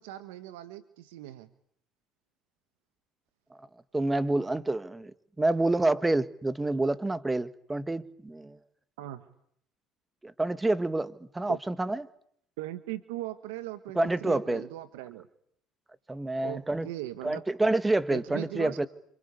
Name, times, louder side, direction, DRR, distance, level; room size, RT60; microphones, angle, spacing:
voice 1, 0.0-1.5 9.0-9.3 11.5-11.6 12.6-15.3 16.4-17.4 18.1-18.8, right 15 dB, 85° right, 1.5 m, -39 dB
voice 2, 3.9-5.1 5.4-8.6 10.2-12.1 14.0-14.7 16.1-16.9 17.2-18.9, right 2 dB, 15° right, 1.8 m, -28 dB
27.5 x 25.5 x 8.5 m
supercardioid pair, 80°, 0 cm